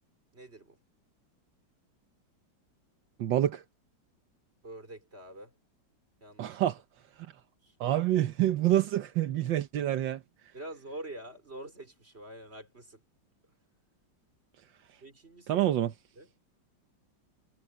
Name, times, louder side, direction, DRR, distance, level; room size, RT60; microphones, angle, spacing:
voice 1, 0.3-0.8 4.6-5.5 6.2-6.6 7.6-7.8 8.5-8.6 10.5-13.0 15.0-15.7 16.1-16.3, right 1 dB, 35° right, 4.7 m, -46 dB
voice 2, 3.2-3.6 6.4-6.8 7.8-10.2 15.5-15.9, right 12 dB, 80° right, 1.6 m, -27 dB
omnidirectional pair, 2.0 m